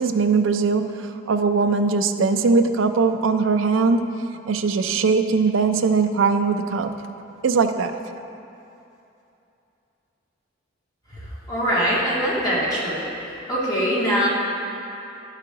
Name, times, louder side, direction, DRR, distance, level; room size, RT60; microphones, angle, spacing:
voice 1, 0.0-6.9 7.4-8.0, right 4 dB, 75° right, 8 dB, 0.4 m, -20 dB
voice 2, 11.5-13.0 13.5-14.3, equal, 20° left, -7 dB, 1.8 m, -22 dB
10.5 x 4.9 x 4.7 m, 2.8 s
head